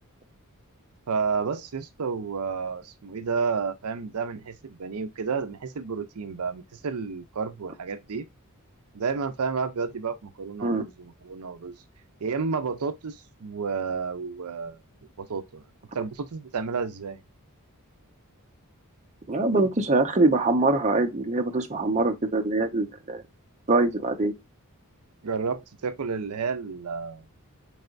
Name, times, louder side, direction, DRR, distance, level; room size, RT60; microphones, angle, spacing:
voice 1, 1.1-8.3 8.9-11.8 12.2-14.8 15.2-15.6 15.9-17.2 25.2-27.2, right 5 dB, 80° right, 0.6 m, -31 dB
voice 2, 19.3-23.2 23.7-24.3, right 2 dB, 30° right, 0.8 m, -23 dB
4.7 x 3.3 x 2.4 m
head